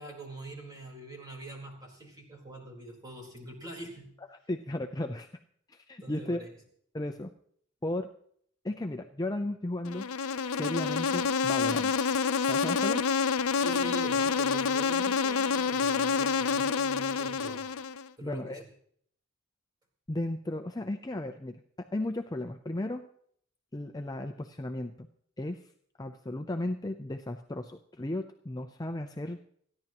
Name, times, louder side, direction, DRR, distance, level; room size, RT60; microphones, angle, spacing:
voice 1, 0.0-4.1 6.0-6.5 13.5-17.6 18.2-18.6, right 1 dB, 20° right, 0 dB, 4.1 m, -44 dB
voice 2, 4.5-5.3 5.7-6.4 6.9-7.3 7.8-8.1 8.6-10.1 10.5-11.9 12.5-13.1 18.2-18.6 20.1-21.6 21.9-23.1 23.7-25.1 25.4-25.6 26.0-29.4, left 1 dB, 20° left, 5 dB, 0.5 m, -35 dB
Insect, 9.9-18.1, left 5 dB, 85° left, 0.6 m, -28 dB
29.5 x 11.0 x 3.0 m, 0.65 s
head